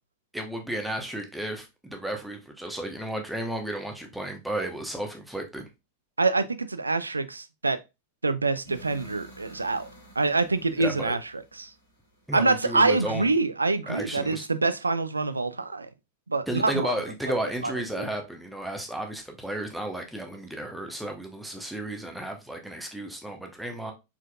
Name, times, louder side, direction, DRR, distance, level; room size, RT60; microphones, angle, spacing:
voice 1, 0.3-5.7 10.8-11.1 12.3-13.3 13.9-14.5 16.5-23.9, right 1 dB, 5° right, 1.0 m, -33 dB
voice 2, 6.2-7.8 8.2-9.9 10.2-11.7 12.3-15.9 16.3-16.9 17.6-18.1, right 3 dB, 80° right, 0.4 m, -26 dB
sound 1, 8.7-12.6, right 1 dB, 80° left, 2.2 m, -50 dB
4.5 x 4.1 x 2.3 m
figure-of-eight pair, 90°, 0 cm